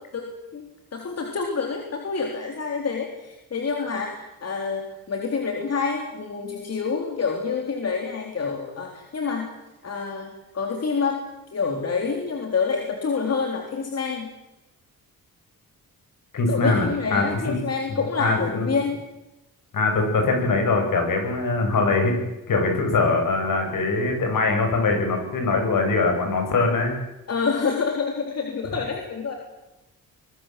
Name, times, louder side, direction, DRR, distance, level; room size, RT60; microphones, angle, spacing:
voice 1, 0.1-0.6 0.9-9.5 9.8-11.2 11.5-14.3 16.5-19.0 27.3-29.3, left 5 dB, 45° left, 2 dB, 3.7 m, -27 dB
voice 2, 16.3-17.6 18.2-18.7 19.7-22.1 22.5-27.0 28.7-28.8, left 3 dB, 60° left, 4 dB, 7.9 m, -22 dB
25.0 x 21.0 x 7.7 m, 0.97 s
cardioid pair, 130°, 36 cm